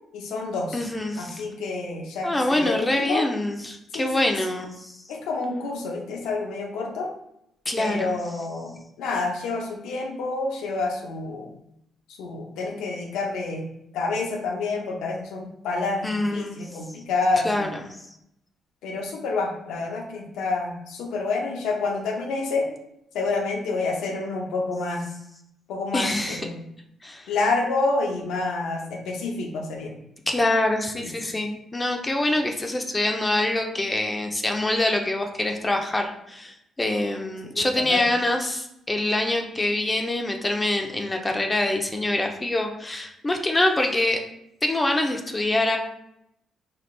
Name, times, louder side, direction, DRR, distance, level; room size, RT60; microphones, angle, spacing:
voice 1, 0.1-0.8 1.2-3.2 3.9-4.4 5.1-7.1 7.8-11.5 12.2-17.7 18.8-22.7 23.1-25.1 25.7-26.6 27.3-29.9 31.0-31.3 37.6-38.0, left 3 dB, 90° left, 1 dB, 0.7 m, -28 dB
voice 2, 0.7-1.4 2.2-4.9 7.7-8.2 16.0-16.7 17.4-18.0 25.9-26.4 27.0-27.3 30.3-44.2 44.6-45.8, left 1 dB, 20° left, 3 dB, 0.4 m, -25 dB
4.2 x 2.4 x 3.2 m, 0.78 s
cardioid pair, 90°, 0 cm